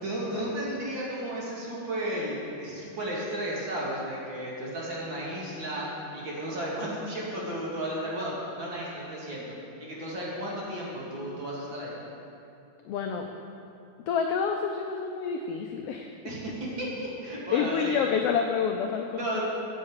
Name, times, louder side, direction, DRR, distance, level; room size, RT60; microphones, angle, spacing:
voice 1, 0.0-5.9 6.1-8.3 8.6-9.5 9.8-12.0 16.2-18.0 19.2-19.4, right 1 dB, 45° right, -5 dB, 2.6 m, -33 dB
voice 2, 12.9-13.3 14.1-16.1 17.5-19.2, left 6 dB, 80° left, 4 dB, 1.3 m, -28 dB
14.0 x 7.5 x 4.8 m, 2.6 s
omnidirectional pair, 3.3 m